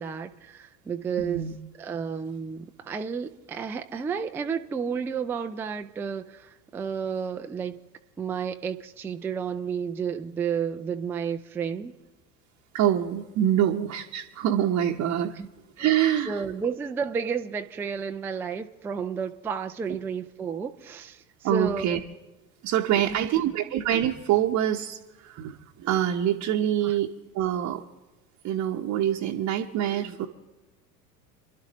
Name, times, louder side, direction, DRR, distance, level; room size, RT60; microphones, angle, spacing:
voice 1, 0.0-7.7 8.2-11.9 15.3-15.5 15.8-15.9 16.3-22.0 23.0-23.4 26.8-27.0, right 6 dB, 5° right, 6 dB, 0.3 m, -32 dB
voice 2, 1.2-1.5 12.7-15.3 15.8-16.4 21.4-22.0 22.6-27.1 27.3-27.8 28.4-30.3, right 11 dB, 35° right, -1 dB, 0.9 m, -25 dB
27.5 x 11.5 x 3.0 m, 1.1 s
figure-of-eight pair, 75°, 46 cm